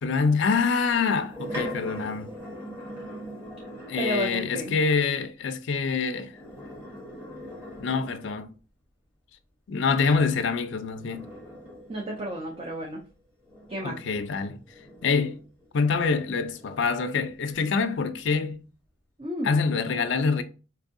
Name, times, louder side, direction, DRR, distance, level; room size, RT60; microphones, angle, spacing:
voice 1, 0.0-2.3 3.9-6.3 7.8-8.5 9.7-11.3 13.8-14.6 15.0-15.4 15.7-18.6 19.4-20.4, left 5 dB, 60° left, 0.4 m, -25 dB
sound 1, 0.9-4.2 6.2-8.5 10.5-15.7 16.2-18.0, equal, 10° right, 1.2 m, -42 dB
voice 2, 4.0-4.8 11.9-13.0 13.7-14.0 19.2-19.6, right 1 dB, 30° right, 0.4 m, -32 dB
4.3 x 2.6 x 2.5 m
head